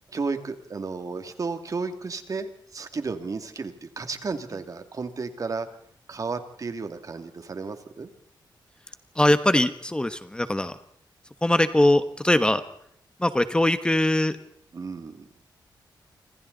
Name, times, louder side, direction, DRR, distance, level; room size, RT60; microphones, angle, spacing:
voice 1, 0.1-5.7 6.1-8.1 14.7-15.2, right 4 dB, 45° right, 8 dB, 2.5 m, -33 dB
voice 2, 9.1-10.8 11.4-12.6 13.2-14.4, left 1 dB, 10° left, 10 dB, 1.3 m, -21 dB
28.5 x 25.5 x 4.1 m, 0.69 s
wide cardioid pair, 105°, 8 cm